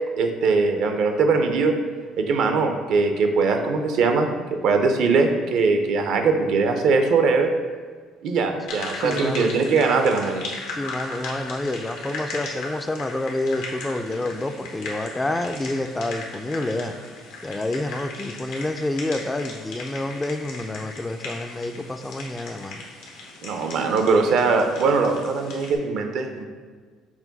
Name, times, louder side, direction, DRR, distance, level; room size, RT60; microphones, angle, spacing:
voice 1, 0.2-1.7 2.2-4.3 4.6-7.5 8.2-10.4 23.4-26.5, right 4 dB, 70° right, 5 dB, 0.5 m, -21 dB
sound 1, 8.7-25.8, left 3 dB, 85° left, 0.9 m, -37 dB
voice 2, 8.9-9.5 10.7-16.9 17.4-22.8, left 2 dB, 15° left, 7 dB, 0.3 m, -28 dB
5.8 x 2.2 x 4.0 m, 1.5 s
supercardioid pair, 80°, 0 cm